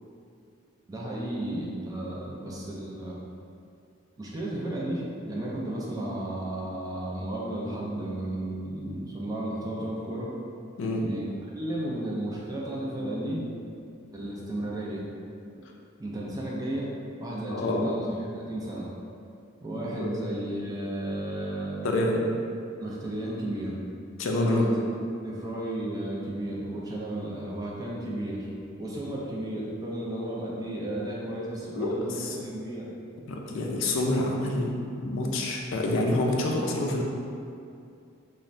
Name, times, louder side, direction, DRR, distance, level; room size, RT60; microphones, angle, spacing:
voice 1, 0.9-3.2 4.2-10.3 11.0-13.4 14.1-15.0 16.0-16.9 17.2-18.9 19.6-21.9 22.8-23.8 24.4-24.9 25.2-28.5 28.8-32.9, right 1 dB, 20° right, -5 dB, 0.3 m, -33 dB
voice 2, 17.5-17.8 20.0-20.1 21.8-22.2 24.2-24.7 31.8-32.4 33.3-37.0, left 2 dB, 70° left, 0 dB, 0.3 m, -27 dB
3.0 x 2.1 x 2.5 m, 2.5 s
head